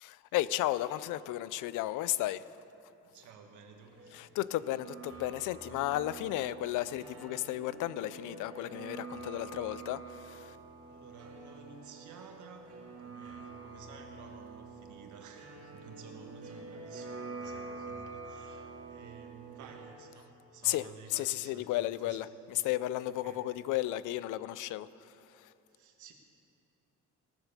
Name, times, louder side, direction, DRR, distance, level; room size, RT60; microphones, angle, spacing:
voice 1, 0.0-2.4 4.1-10.6 20.6-20.8 21.1-24.9, left 15 dB, 90° left, 17 dB, 0.5 m, -34 dB
voice 2, 3.0-4.1 10.9-22.2 23.1-23.5 25.7-26.1, right 5 dB, 75° right, 3 dB, 1.6 m, -53 dB
sound 1, 3.8-20.0, right 4 dB, 50° right, 2.1 m, -47 dB
17.5 x 7.1 x 6.7 m, 2.8 s
cardioid pair, 90°, 30 cm